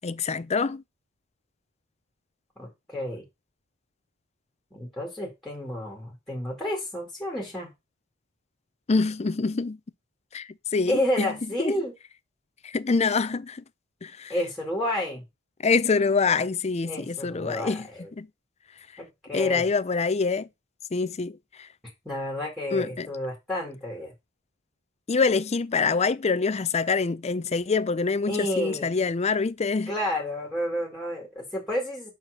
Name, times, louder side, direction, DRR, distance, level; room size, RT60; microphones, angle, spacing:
voice 1, 0.0-0.8 8.9-9.8 10.3-11.3 11.6-11.7 12.6-13.6 14.0-14.3 15.6-17.9 18.2-18.3 19.3-20.5 20.9-21.7 22.7-23.1 25.1-29.9, left 4 dB, 30° left, 0.5 m, -25 dB
voice 2, 2.6-3.2 4.7-7.7 10.9-11.9 14.3-15.2 16.9-18.1 19.0-19.6 22.0-24.1 28.3-28.9 29.9-32.1, left 1 dB, ahead, 2.2 m, -30 dB
5.7 x 4.5 x 6.3 m
head